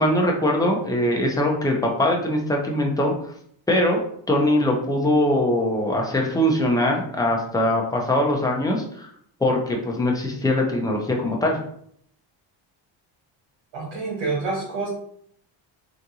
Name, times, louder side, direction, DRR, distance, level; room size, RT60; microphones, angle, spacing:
voice 1, 0.0-3.1 3.7-4.0 4.3-9.1 9.4-11.6, left 1 dB, 10° left, 0 dB, 0.5 m, -22 dB
voice 2, 13.7-14.9, right 3 dB, 85° right, -5 dB, 1.3 m, -27 dB
3.5 x 2.5 x 2.7 m, 0.67 s
cardioid pair, 135°, 45 cm